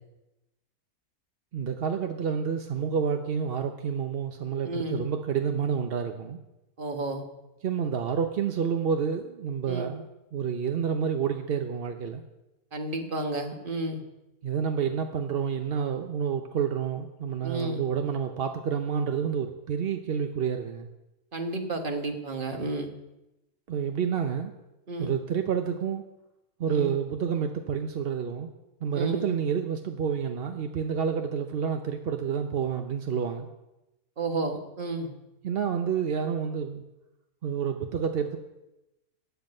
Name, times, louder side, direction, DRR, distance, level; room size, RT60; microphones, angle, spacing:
voice 1, 1.5-6.4 7.6-10.1 10.3-12.2 14.4-20.9 23.7-24.5 25.0-26.0 26.6-28.5 28.8-33.5 35.4-36.8 37.4-38.4, right 7 dB, 55° right, 6 dB, 0.7 m, -29 dB
voice 2, 4.6-5.1 6.8-7.2 9.7-9.9 12.7-14.0 17.4-17.8 21.3-22.9 24.9-25.1 26.7-26.9 28.9-29.3 34.2-35.1, right 2 dB, 35° right, 5 dB, 1.5 m, -32 dB
15.0 x 9.3 x 5.4 m, 0.96 s
omnidirectional pair, 1.7 m